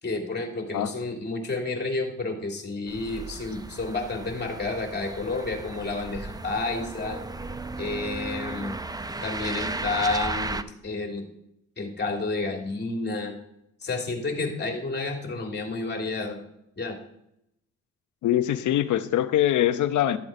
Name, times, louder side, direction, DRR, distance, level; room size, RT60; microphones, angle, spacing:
voice 1, 0.0-7.2 7.8-8.8 9.2-11.2 11.8-13.3 13.8-16.4 16.8-17.0, left 3 dB, 35° left, 2 dB, 3.1 m, -30 dB
sound 1, 2.9-10.6, right 2 dB, 15° right, 0.6 m, -35 dB
voice 2, 18.2-20.2, left 12 dB, 75° left, 11 dB, 1.0 m, -23 dB
13.5 x 7.9 x 5.1 m, 0.77 s
cardioid pair, 90°, 30 cm